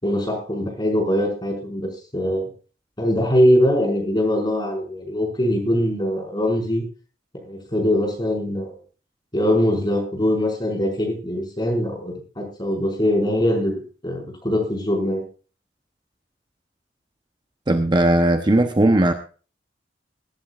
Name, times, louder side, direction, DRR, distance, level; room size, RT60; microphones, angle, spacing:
voice 1, 0.0-2.5 3.0-6.8 7.3-8.8 9.3-15.2, equal, 25° left, 0 dB, 5.6 m, -22 dB
voice 2, 17.7-19.1, right 1 dB, 25° right, 6 dB, 0.9 m, -17 dB
21.5 x 11.5 x 2.5 m, 0.37 s
head